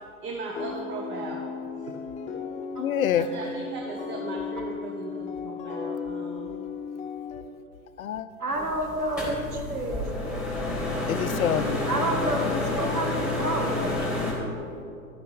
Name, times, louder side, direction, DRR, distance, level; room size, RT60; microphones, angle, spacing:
voice 1, 0.2-1.4 1.9-2.0 3.2-6.5 8.6-8.7, right 3 dB, 25° right, 1 dB, 1.1 m, -37 dB
sound 1, 0.6-7.4, left 6 dB, 15° left, 1.1 m, -35 dB
voice 2, 2.8-3.3 8.0-8.3 11.1-11.8 12.4-13.0, left 9 dB, 65° left, 12 dB, 0.6 m, -27 dB
voice 3, 8.4-10.1 11.9-14.1, right 1 dB, 80° right, 2 dB, 1.5 m, -29 dB
sound 2, 8.5-14.3, left 2 dB, ahead, 2.7 m, -29 dB
14.0 x 11.5 x 3.5 m, 2.6 s
figure-of-eight pair, 95°, 44 cm